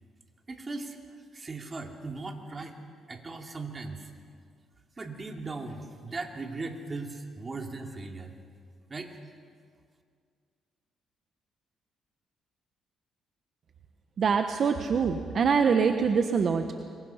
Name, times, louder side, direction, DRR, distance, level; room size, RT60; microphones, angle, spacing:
voice 1, 0.5-2.8 3.1-4.1 5.0-8.3 8.9-9.2, right 3 dB, 30° right, 3 dB, 2.6 m, -38 dB
voice 2, 14.2-16.7, right 6 dB, 55° right, 6 dB, 1.1 m, -24 dB
25.5 x 23.0 x 5.8 m, 2.1 s
cardioid pair, 90°, 0 cm